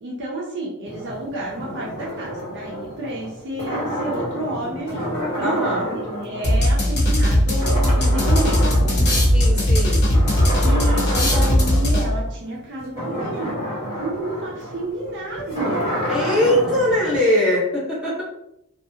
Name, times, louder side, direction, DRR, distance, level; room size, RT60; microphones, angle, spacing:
voice 1, 0.0-9.2 10.6-13.6 13.9-15.9, right 1 dB, 55° right, -3 dB, 0.5 m, -30 dB
sound 1, 0.8-7.3 7.6-9.6 10.0-17.2, equal, 25° left, 1.2 m, -29 dB
voice 2, 5.4-5.8 9.3-10.1 16.1-18.2, left 1 dB, 5° right, -9 dB, 1.2 m, -21 dB
sound 2, 6.4-12.3, equal, 50° left, 0.8 m, -18 dB
2.6 x 2.3 x 2.7 m, 0.82 s
head